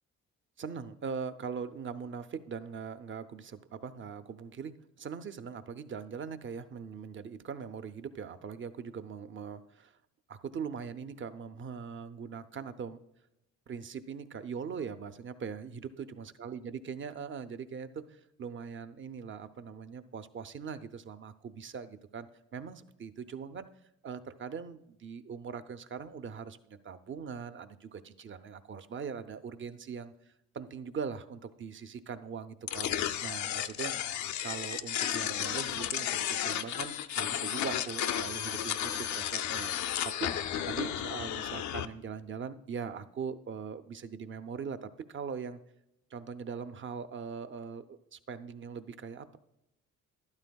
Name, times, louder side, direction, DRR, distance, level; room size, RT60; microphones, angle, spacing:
voice 1, 0.6-9.9 10.3-13.0 13.7-23.7 24.0-32.9 33.2-39.7 40.0-40.3 40.7-45.6 46.1-49.4, right 6 dB, 40° right, 11 dB, 0.6 m, -41 dB
sound 1, 32.7-41.9, left 10 dB, 70° left, 0.5 m, -33 dB
13.0 x 11.5 x 2.3 m, 0.84 s
cardioid pair, 90°, 30 cm